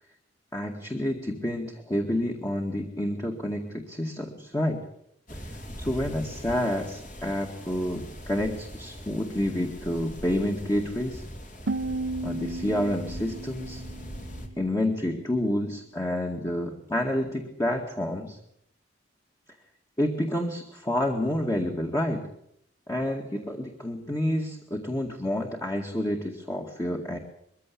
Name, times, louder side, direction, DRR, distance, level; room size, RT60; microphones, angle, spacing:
voice 1, 0.5-4.8 5.3-5.4 5.8-11.3 12.2-13.8 14.6-18.4 20.0-22.3 22.9-27.2, left 1 dB, 20° left, 2 dB, 2.1 m, -29 dB
sound 1, 5.3-14.5, equal, 45° left, 3.5 m, -41 dB
sound 2, 11.7-14.7, right 2 dB, 70° right, 0.8 m, -34 dB
22.5 x 15.5 x 8.5 m, 0.74 s
head